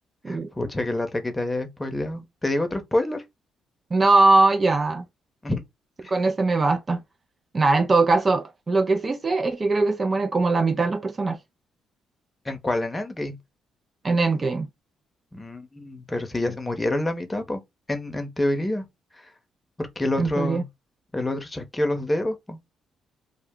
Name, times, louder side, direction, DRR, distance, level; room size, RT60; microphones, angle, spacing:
voice 1, 0.3-3.2 5.4-5.6 12.4-13.4 15.3-17.6 17.9-18.9 19.8-20.7 21.1-22.6, left 1 dB, 20° left, 0.9 m, -27 dB
voice 2, 3.9-5.0 6.1-7.0 7.5-11.4 14.0-14.7 20.2-20.6, right 3 dB, 35° right, 0.4 m, -21 dB
2.3 x 2.1 x 3.6 m
supercardioid pair, 65°, 0 cm